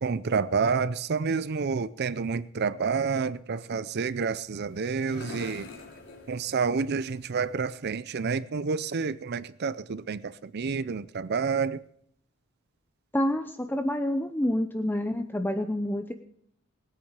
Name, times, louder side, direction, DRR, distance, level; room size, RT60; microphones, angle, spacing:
voice 1, 0.0-5.7 6.3-11.8, right 5 dB, 50° right, 0.5 m, -29 dB
sound 1, 4.1-7.7, left 2 dB, 55° left, 3.7 m, -47 dB
voice 2, 13.1-16.1, left 1 dB, 10° left, 0.7 m, -28 dB
20.0 x 8.8 x 6.6 m
head